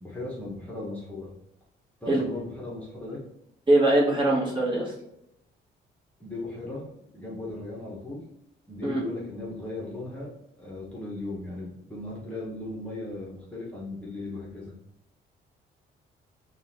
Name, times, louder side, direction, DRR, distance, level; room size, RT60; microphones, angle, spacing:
voice 1, 0.0-1.3 2.0-3.2 6.2-6.9 7.1-8.2 8.7-10.3 10.6-14.7, left 2 dB, 5° left, -6 dB, 1.2 m, -37 dB
voice 2, 3.7-4.9 8.8-9.0, right 1 dB, 25° right, -4 dB, 1.5 m, -22 dB
5.5 x 2.6 x 2.8 m, 0.80 s
cardioid pair, 90°, 20 cm